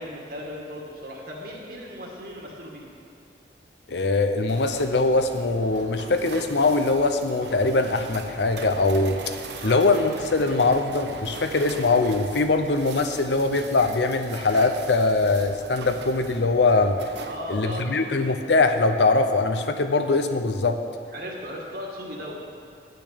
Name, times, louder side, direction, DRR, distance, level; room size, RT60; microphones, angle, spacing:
voice 1, 0.0-2.8 9.6-9.8 17.3-18.1 21.1-22.4, equal, 55° right, -2 dB, 2.1 m, -36 dB
voice 2, 3.9-9.3 9.6-17.0 17.5-20.8, left 3 dB, 70° left, 7 dB, 0.7 m, -22 dB
sound 1, 4.5-17.4, right 3 dB, 70° right, 0.9 m, -41 dB
10.5 x 6.5 x 8.4 m, 2.4 s
head